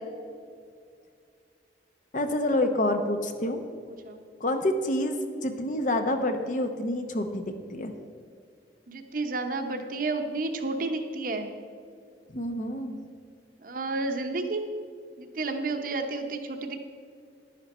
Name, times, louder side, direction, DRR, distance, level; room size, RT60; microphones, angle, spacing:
voice 1, 2.1-3.6 4.4-7.9 12.3-13.0, left 1 dB, 45° left, 6 dB, 0.8 m, -28 dB
voice 2, 3.9-4.2 8.9-11.5 13.6-14.6 15.2-16.8, right 3 dB, 50° right, 5 dB, 0.9 m, -31 dB
11.5 x 10.5 x 4.3 m, 2.3 s
head